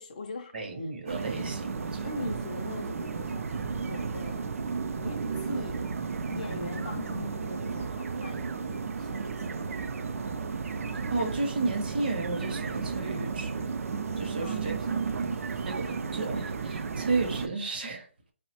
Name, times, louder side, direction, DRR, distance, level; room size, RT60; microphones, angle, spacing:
voice 1, 0.0-0.5 0.8-0.9 2.0-4.5 4.9-5.9 6.3-9.6 14.4-15.9, left 3 dB, 35° left, 0.4 m, -41 dB
voice 2, 0.5-2.3 11.1-13.6 14.2-14.9 15.7-18.1, right 3 dB, 45° right, 0.6 m, -33 dB
sound 1, 1.1-17.5, right 5 dB, 80° right, 0.3 m, -33 dB
3.1 x 2.1 x 2.8 m
hypercardioid pair, 175°, 7 cm